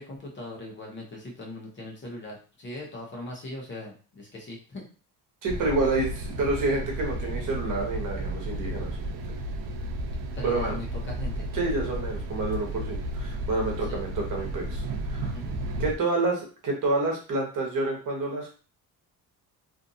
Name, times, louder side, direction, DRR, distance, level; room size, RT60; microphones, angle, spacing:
voice 1, 0.0-4.9 10.4-11.4 13.9-14.0 15.3-15.6, left 1 dB, 30° left, -2 dB, 0.8 m, -39 dB
voice 2, 5.4-8.9 10.4-10.8 11.5-15.3 15.8-18.5, right 2 dB, 50° right, 0 dB, 1.0 m, -28 dB
sound 1, 5.5-16.0, right 1 dB, 75° right, 0.6 m, -33 dB
2.6 x 2.5 x 2.6 m, 0.37 s
cardioid pair, 145°, 39 cm